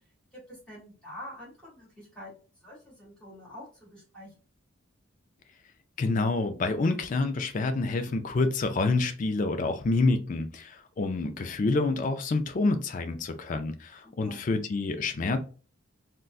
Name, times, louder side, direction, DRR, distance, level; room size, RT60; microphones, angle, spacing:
voice 1, 0.3-4.3 14.0-14.4, left 1 dB, 5° left, 1.6 m, -46 dB
voice 2, 6.0-15.4, left 3 dB, 40° left, 0.4 m, -27 dB
3.8 x 2.2 x 2.3 m
head